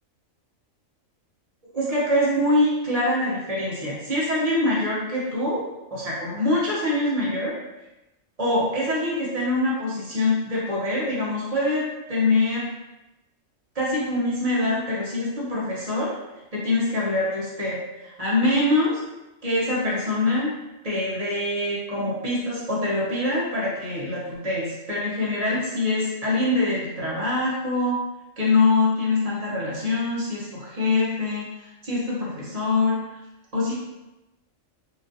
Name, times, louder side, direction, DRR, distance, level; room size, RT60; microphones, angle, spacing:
voice 1, 1.7-5.7 5.9-7.6 8.4-12.7 13.7-16.2 16.5-19.0 19.4-20.5 20.8-28.0 28.4-33.0 33.5-33.7, left 2 dB, 35° right, -6 dB, 0.6 m, -24 dB
3.0 x 2.4 x 2.6 m, 0.98 s
omnidirectional pair, 1.4 m